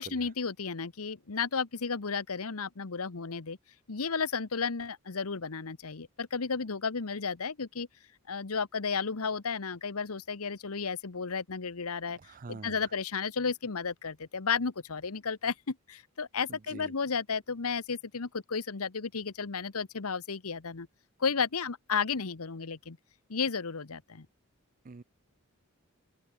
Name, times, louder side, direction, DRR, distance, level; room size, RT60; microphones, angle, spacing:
voice 1, 0.0-3.6 3.9-7.9 8.3-12.2 12.5-20.9 21.2-23.0 23.3-24.3, left 5 dB, 90° left, 1.1 m, -33 dB
voice 2, 12.2-12.8 16.5-16.9 24.8-25.0, right 3 dB, 40° right, 0.5 m, -45 dB
head